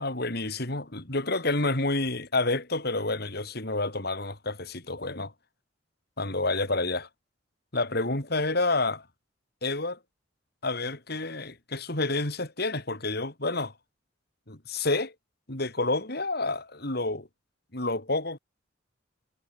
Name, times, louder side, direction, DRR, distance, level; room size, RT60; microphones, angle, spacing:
voice 1, 0.0-5.3 6.2-7.1 7.7-9.0 9.6-10.0 10.6-13.7 14.5-15.1 15.5-17.3 17.7-18.4, left 2 dB, 55° left, 4.3 m, -29 dB
head